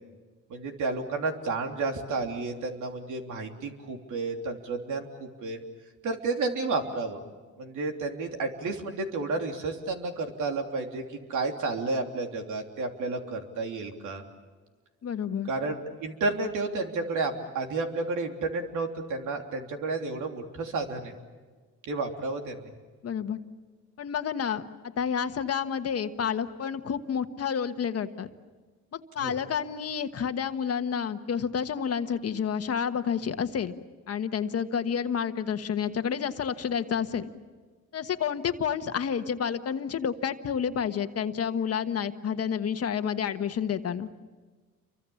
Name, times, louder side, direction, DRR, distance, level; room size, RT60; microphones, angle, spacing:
voice 1, 0.5-5.6 6.0-7.2 7.6-14.2 15.5-21.1 21.8-22.7 29.2-29.4, right 3 dB, 75° right, 3 dB, 3.3 m, -31 dB
voice 2, 15.0-15.5 23.0-23.4 24.0-28.3 28.9-33.8 34.1-37.3 37.9-44.1, left 7 dB, 55° left, 9 dB, 1.4 m, -30 dB
29.0 x 24.5 x 7.2 m, 1.4 s
cardioid pair, 90°, 30 cm